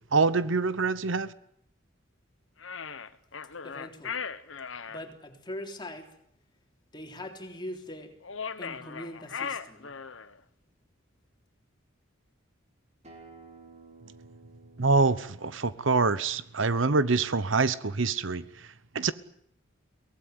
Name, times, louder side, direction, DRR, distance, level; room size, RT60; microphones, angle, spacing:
voice 1, 0.1-1.3 14.8-18.7 18.9-19.1, right 4 dB, 70° right, 1.0 m, -25 dB
sound 1, 2.6-5.0 8.2-10.4, left 6 dB, 70° left, 1.3 m, -38 dB
voice 2, 3.6-4.2 4.9-6.1 6.9-8.2 8.6-10.0, left 1 dB, 25° left, 3.6 m, -41 dB
Acoustic guitar, 13.0-18.2, right 3 dB, 35° right, 5.8 m, -56 dB
23.5 x 18.0 x 9.5 m
head